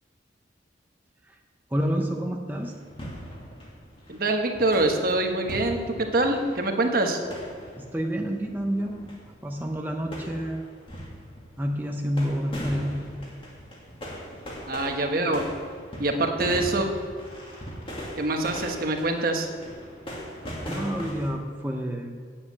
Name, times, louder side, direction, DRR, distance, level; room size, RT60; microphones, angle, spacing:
voice 1, 1.7-2.8 7.7-10.6 11.6-13.0 16.4-16.5 20.7-22.2, equal, 10° right, 2 dB, 0.6 m, -29 dB
sound 1, 2.5-21.3, equal, 30° left, 2.1 m, -40 dB
voice 2, 4.1-7.2 14.7-15.4 16.0-16.9 18.2-19.5, right 2 dB, 50° right, 4 dB, 1.2 m, -25 dB
8.5 x 7.4 x 8.3 m, 2.2 s
head